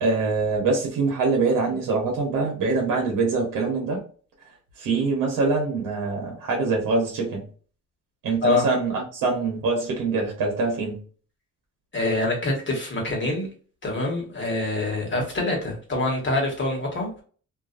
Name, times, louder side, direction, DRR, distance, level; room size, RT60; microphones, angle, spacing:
voice 1, 0.0-4.0 4.8-7.4 8.2-11.0, right 4 dB, 80° right, 1.0 m, -24 dB
voice 2, 11.9-13.5 13.8-17.2, left 2 dB, 35° left, 1.4 m, -25 dB
2.7 x 2.5 x 2.4 m
cardioid pair, 115°, 33 cm